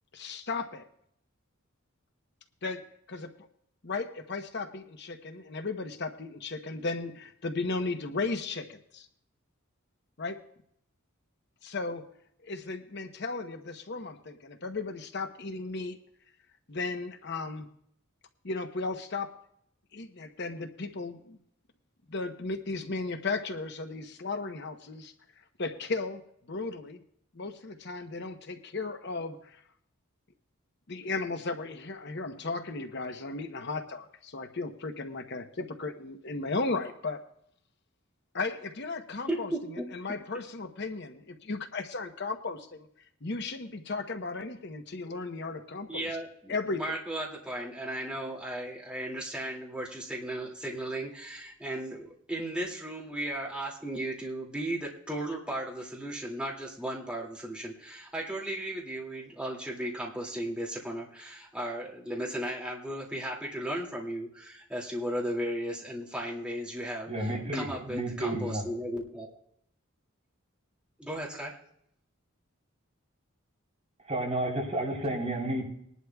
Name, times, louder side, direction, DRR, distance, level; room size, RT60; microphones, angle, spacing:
voice 1, 0.1-0.9 2.6-3.3 3.8-9.1 10.2-10.4 11.6-12.0 12.4-16.0 16.7-17.7 18.4-19.3 19.9-21.4 22.1-25.1 25.6-26.2 26.5-27.0 27.3-29.6 30.9-37.2 38.3-39.5 39.9-42.7 43.2-46.1 46.5-46.8, left 3 dB, 55° left, 7 dB, 0.9 m, -35 dB
voice 2, 39.3-39.9 45.9-69.4 71.0-71.6, right 1 dB, 5° right, -4 dB, 2.3 m, -35 dB
voice 3, 67.1-68.6 74.1-75.7, right 1 dB, 30° right, -2 dB, 3.6 m, -31 dB
21.0 x 11.0 x 2.3 m, 0.70 s
head